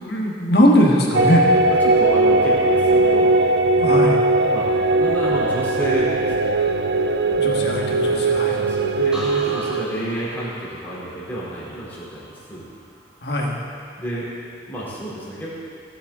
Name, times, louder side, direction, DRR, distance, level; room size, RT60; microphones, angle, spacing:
voice 1, 0.0-1.5 3.8-4.2 7.4-8.6 13.2-13.6, equal, 65° left, -1 dB, 1.5 m, -19 dB
sound 1, 1.1-9.8, right 2 dB, 65° right, 0.4 m, -19 dB
voice 2, 1.6-3.3 4.4-4.7 5.0-6.5 8.0-12.7 14.0-14.3 14.7-15.6, right 1 dB, 10° left, -9 dB, 3.2 m, -30 dB
sound 2, 9.1-12.9 13.3-13.8, equal, 5° right, 1.2 m, -38 dB
17.0 x 7.5 x 3.7 m, 2.4 s
head